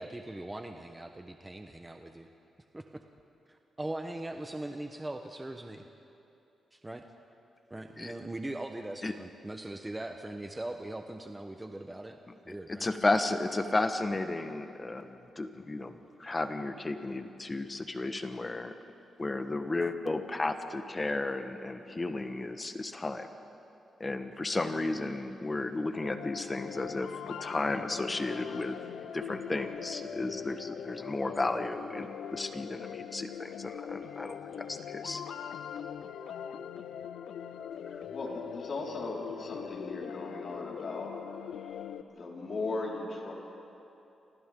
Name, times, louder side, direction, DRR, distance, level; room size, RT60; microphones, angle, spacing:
voice 1, 0.0-2.3 2.7-3.0 3.5-5.9 6.7-7.0 7.7-12.2 12.4-12.9, right 1 dB, 15° right, 4 dB, 1.1 m, -40 dB
voice 2, 12.5-15.9 16.2-18.7 19.2-23.3 24.0-28.8 29.1-35.2, left 2 dB, 25° left, 7 dB, 1.4 m, -33 dB
sound 1, 26.0-42.0, left 8 dB, 85° left, 0.7 m, -41 dB
voice 3, 38.1-41.1 41.4-43.3, left 3 dB, 55° left, -3 dB, 5.0 m, -38 dB
29.0 x 26.0 x 3.9 m, 2.8 s
cardioid pair, 75°, 0 cm